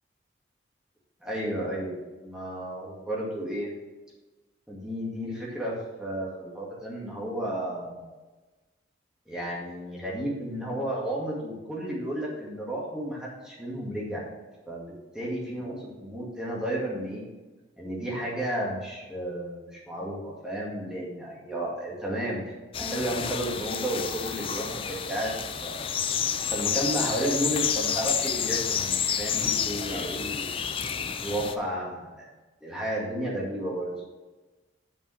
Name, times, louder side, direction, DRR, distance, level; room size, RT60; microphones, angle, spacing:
voice 1, 1.2-3.7 4.7-8.1 9.3-14.2 14.7-17.2 17.8-22.4 22.8-25.9 26.5-30.5 31.2-32.3 32.6-33.9, right 1 dB, 5° right, -5 dB, 2.1 m, -32 dB
sound 1, 22.7-31.5, left 7 dB, 30° left, 0.4 m, -29 dB
7.2 x 5.4 x 6.5 m, 1.2 s
head